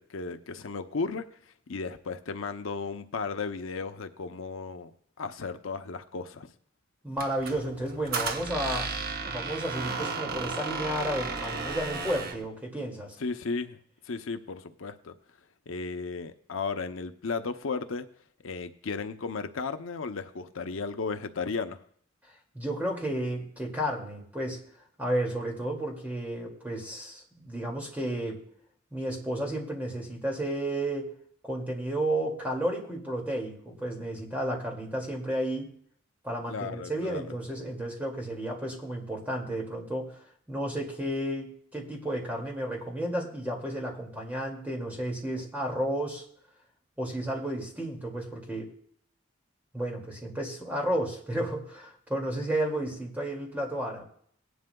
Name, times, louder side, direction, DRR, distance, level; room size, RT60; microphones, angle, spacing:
voice 1, 0.0-4.9 5.2-6.5 13.2-13.8 14.0-15.1 15.7-18.1 18.4-21.8 36.5-37.2, left 4 dB, 80° left, 8 dB, 0.7 m, -35 dB
voice 2, 7.0-8.9 9.2-13.2 22.5-24.6 25.0-28.4 28.9-31.1 31.4-35.7 36.2-40.1 40.5-46.2 47.0-48.7 49.7-54.0, right 1 dB, 10° right, 0 dB, 2.2 m, -32 dB
Squeak, 7.2-12.5, right 4 dB, 45° right, 0.8 m, -34 dB
18.0 x 11.0 x 2.3 m, 0.62 s
head